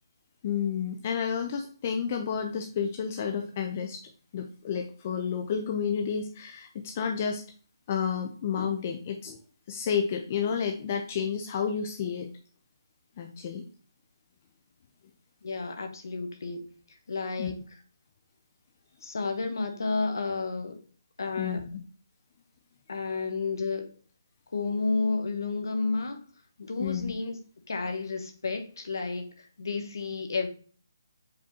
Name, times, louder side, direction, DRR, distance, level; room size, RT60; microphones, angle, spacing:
voice 1, 0.4-4.0 4.3-7.4 7.9-9.4 9.7-12.3 13.2-13.6 17.4-17.5 21.4-21.7 26.8-27.1, left 7 dB, 25° left, 4 dB, 0.3 m, -30 dB
voice 2, 15.4-16.6 17.1-17.5 19.0-20.8 21.2-21.6 22.9-23.9 24.5-26.2 26.6-27.4 27.7-30.5, left 3 dB, 60° left, 6 dB, 0.9 m, -31 dB
4.9 x 3.5 x 2.8 m, 0.41 s
hypercardioid pair, 165°, 2 cm